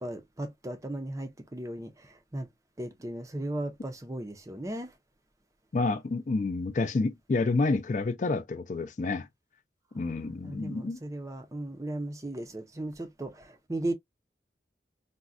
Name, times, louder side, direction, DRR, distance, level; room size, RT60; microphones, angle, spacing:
voice 1, 0.0-2.5 2.8-4.9 9.9-13.9, right 1 dB, 20° right, 0.4 m, -36 dB
voice 2, 5.7-9.3 9.9-11.0, left 3 dB, 45° left, 0.4 m, -29 dB
3.6 x 2.1 x 2.3 m
head